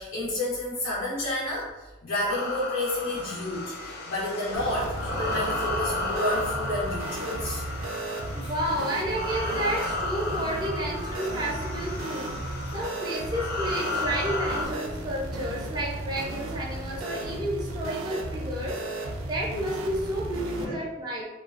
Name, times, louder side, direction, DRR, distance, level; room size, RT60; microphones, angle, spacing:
voice 1, 0.0-7.6 20.6-20.7, left 1 dB, 80° left, -8 dB, 0.7 m, -30 dB
sound 1, 2.3-14.7, left 2 dB, 50° left, 0.4 m, -34 dB
sound 2, 4.5-20.7, right 2 dB, 85° right, 0.4 m, -35 dB
voice 2, 8.3-21.2, right 1 dB, 20° right, -3 dB, 0.5 m, -31 dB
2.3 x 2.2 x 2.4 m, 1.1 s
head